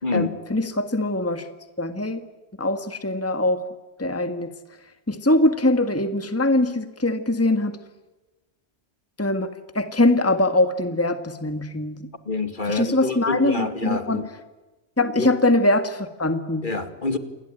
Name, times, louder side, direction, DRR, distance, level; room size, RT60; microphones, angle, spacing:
voice 1, 0.1-1.5 1.8-2.2 2.6-3.6 4.0-4.5 5.1-7.8 9.2-12.1 12.7-14.2 15.0-16.7, left 2 dB, 10° left, 9 dB, 1.7 m, -22 dB
voice 2, 12.3-14.3 15.2-15.3 16.6-17.2, left 3 dB, 40° left, 9 dB, 2.4 m, -27 dB
29.0 x 21.5 x 8.9 m, 1.1 s
omnidirectional pair, 1.2 m